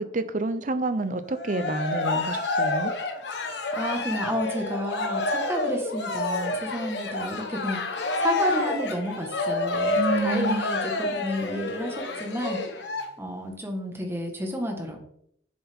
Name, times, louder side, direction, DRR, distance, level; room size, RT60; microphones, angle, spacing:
voice 1, 0.0-2.9 9.9-10.6, right 2 dB, 45° right, 11 dB, 0.7 m, -28 dB
Cheering, 1.3-13.0, left 2 dB, 75° left, 1.2 m, -28 dB
voice 2, 3.3-7.9 8.2-15.0, equal, 15° right, 3 dB, 1.4 m, -31 dB
7.5 x 7.2 x 3.6 m, 0.69 s
head